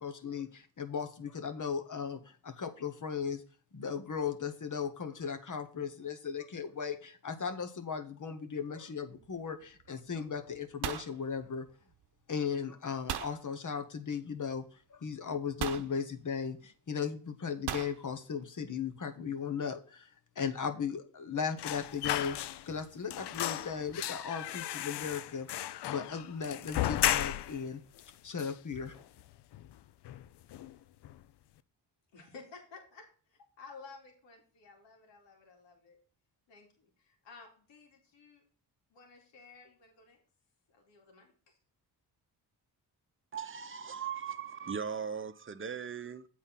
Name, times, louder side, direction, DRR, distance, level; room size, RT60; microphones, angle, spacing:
voice 1, 0.0-3.4 3.7-11.7 12.3-14.6 14.9-25.5 25.8-27.8 28.2-29.0, left 6 dB, 45° left, 1.4 m, -37 dB
sound 1, 9.1-9.5 9.8-10.2 10.5-12.0 13.1-13.4 14.5-14.6 15.6-15.9 17.7-18.0, right 10 dB, 65° right, 0.9 m, -38 dB
sound 2, 21.6-22.8 23.1-27.6 28.0-28.1 28.4-29.2 29.5-29.7 30.0-30.7 31.0-31.2, left 13 dB, 70° left, 0.6 m, -35 dB
voice 2, 32.1-36.0 36.5-38.4 38.9-40.2 40.7-41.6, left 4 dB, 85° left, 2.6 m, -54 dB
voice 3, 43.3-46.3, right 7 dB, 30° right, 0.8 m, -38 dB
8.0 x 4.2 x 5.9 m
cardioid pair, 70°, 42 cm